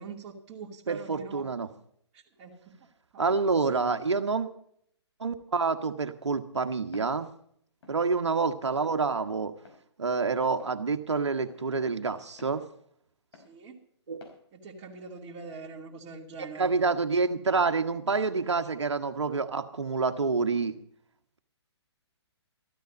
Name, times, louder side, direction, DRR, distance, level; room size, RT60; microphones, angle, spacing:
voice 1, 0.0-1.5 2.1-2.8 3.1-3.6 8.1-8.4 13.3-13.8 14.5-16.7, right 4 dB, 30° right, -4 dB, 2.6 m, -44 dB
voice 2, 0.9-1.7 3.2-4.5 5.2-7.3 7.9-9.5 10.0-12.6 14.1-14.2 16.6-20.7, right 4 dB, 80° right, 7 dB, 1.4 m, -27 dB
Walk footsteps, 6.9-7.2 7.8-8.0 8.7-8.9 9.6-9.8 10.6-10.8 11.5-11.6 12.4-12.6 13.3-13.5 14.2-14.4, left 4 dB, 65° left, 4.8 m, -51 dB
14.0 x 13.0 x 5.3 m, 0.67 s
figure-of-eight pair, 130°, 15 cm